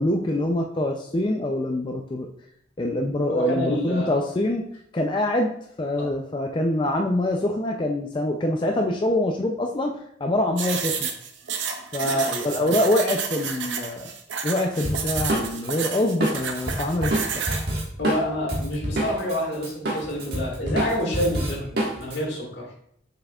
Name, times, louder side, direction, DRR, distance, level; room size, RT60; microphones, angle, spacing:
voice 1, 0.0-2.3 2.8-4.6 4.9-5.5 5.8-9.9 10.2-11.1 11.9-14.1 14.4-17.4, left 1 dB, 25° left, 2 dB, 0.4 m, -24 dB
voice 2, 3.3-4.1 6.0-6.1 12.0-12.7 18.0-22.7, left 1 dB, 70° left, -1 dB, 2.1 m, -28 dB
sound 1, 10.6-17.7, right 6 dB, 80° right, 0.8 m, -30 dB
Drum kit, 14.8-19.4 19.6-22.2, right 1 dB, 60° right, 1.6 m, -27 dB
7.1 x 5.6 x 2.3 m, 0.69 s
head